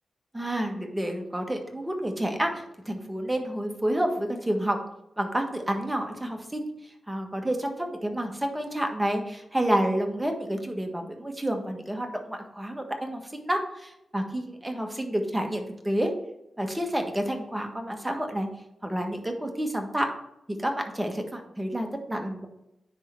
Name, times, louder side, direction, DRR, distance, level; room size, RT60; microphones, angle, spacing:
voice 1, 0.3-4.8 5.2-6.7 7.1-16.1 16.6-18.5 18.8-20.1 20.6-22.5, right 1 dB, 10° right, 3 dB, 1.4 m, -29 dB
9.8 x 3.7 x 4.5 m, 0.83 s
cardioid pair, 65°, 0 cm